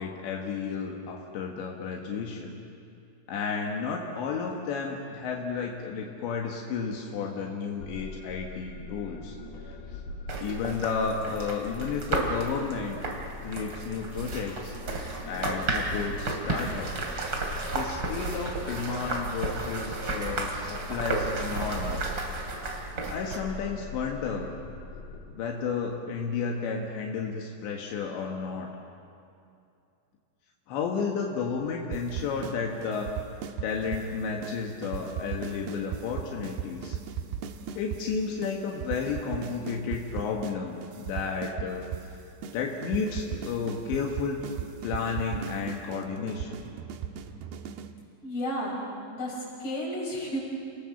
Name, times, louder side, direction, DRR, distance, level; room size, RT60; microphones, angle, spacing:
voice 1, 0.0-2.6 3.3-9.4 10.4-13.0 13.4-14.7 15.3-16.9 17.7-22.2 23.1-24.5 25.4-28.7 30.7-33.1 33.6-37.0 37.8-41.9 42.5-44.4 44.8-46.5, left 5 dB, 80° left, 0 dB, 3.8 m, -32 dB
sound 1, 7.8-25.3, left 2 dB, 65° left, 5.7 m, -42 dB
sound 2, 10.3-23.4, right 2 dB, 30° right, 2.7 m, -33 dB
sound 3, 31.9-32.6 32.8-34.1 34.4-34.6 34.8-38.0 38.4-38.5 38.8-40.6 40.8-42.1 42.4-42.5 42.8-47.9, right 9 dB, 75° right, 2.8 m, -36 dB
voice 2, 48.2-48.7 49.1-50.4, equal, 35° left, -3 dB, 7.1 m, -32 dB
30.0 x 20.0 x 7.3 m, 2.5 s
omnidirectional pair, 5.1 m